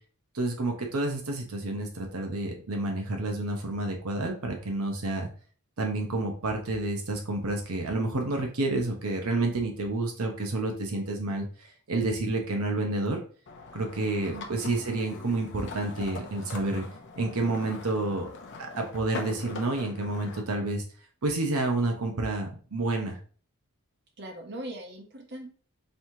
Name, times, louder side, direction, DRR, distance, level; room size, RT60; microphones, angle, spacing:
voice 1, 0.3-5.3 5.8-13.2 13.7-16.8 17.2-18.3 18.7-20.8 21.2-23.2, right 2 dB, 80° right, 2 dB, 0.9 m, -29 dB
sound 1, 13.5-20.4, left 3 dB, 55° left, 0.7 m, -42 dB
voice 2, 14.3-14.7 24.2-25.5, right 1 dB, 50° right, 2 dB, 0.9 m, -40 dB
5.4 x 3.1 x 2.7 m, 0.42 s
head